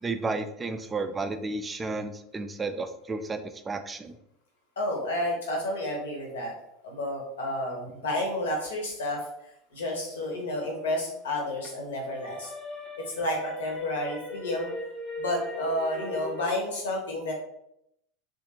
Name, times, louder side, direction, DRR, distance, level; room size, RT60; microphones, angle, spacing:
voice 1, 0.0-4.2, right 3 dB, 20° right, 8 dB, 0.3 m, -32 dB
voice 2, 4.8-6.5 6.8-9.2 9.7-12.5 13.0-14.7 15.2-17.3, left 1 dB, 70° left, 0 dB, 0.9 m, -31 dB
sound 1, 10.2-11.7 12.1-16.4, left 1 dB, 25° left, 0.7 m, -39 dB
3.1 x 2.5 x 2.9 m, 0.77 s
figure-of-eight pair, 75°, 0 cm